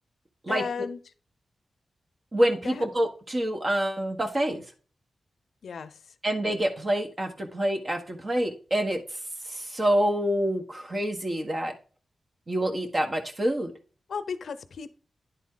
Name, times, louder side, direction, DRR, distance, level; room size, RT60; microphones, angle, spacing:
voice 1, 0.5-1.0 2.6-2.9 5.6-6.0 14.1-14.9, left 5 dB, 80° left, 12 dB, 0.6 m, -34 dB
voice 2, 2.3-4.6 6.2-9.0 9.5-11.7 12.5-13.7, right 1 dB, 40° right, 4 dB, 1.5 m, -27 dB
10.0 x 4.1 x 3.8 m, 0.38 s
cardioid pair, 65°, 0 cm